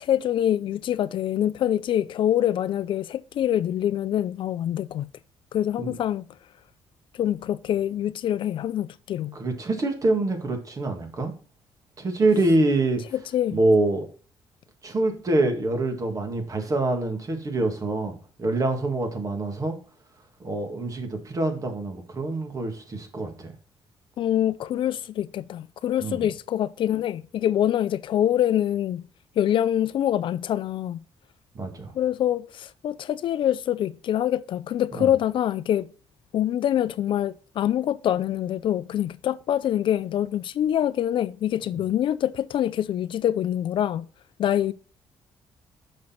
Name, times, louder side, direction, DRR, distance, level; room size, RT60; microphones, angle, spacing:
voice 1, 0.0-5.1 5.5-6.3 7.2-9.4 13.3-13.6 24.2-29.0 29.4-31.0 31.9-35.9 36.3-44.1 44.4-44.7, left 11 dB, 60° left, 0.4 m, -25 dB
voice 2, 9.3-11.3 12.0-13.0 13.5-14.1 14.8-18.1 18.4-19.8 20.4-23.5 26.0-26.3 31.6-31.9 34.9-35.1, right 2 dB, 35° right, 1.9 m, -25 dB
6.3 x 5.9 x 4.4 m
cardioid pair, 125°, 10 cm